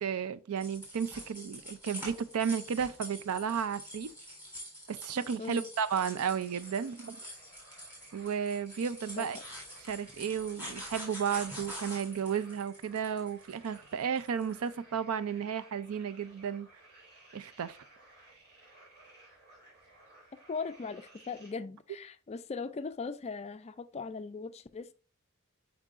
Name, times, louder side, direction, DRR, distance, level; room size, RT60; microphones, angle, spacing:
voice 1, 0.0-4.1 4.9-7.2 8.1-9.4 9.9-16.7 17.3-17.8, right 7 dB, 75° right, 0.4 m, -33 dB
sound 1, 0.6-14.7, equal, 10° right, 3.6 m, -46 dB
sound 2, 5.7-21.5, right 2 dB, 45° right, 3.0 m, -58 dB
voice 2, 20.5-24.9, left 4 dB, 30° left, 0.3 m, -39 dB
8.2 x 4.8 x 2.5 m
head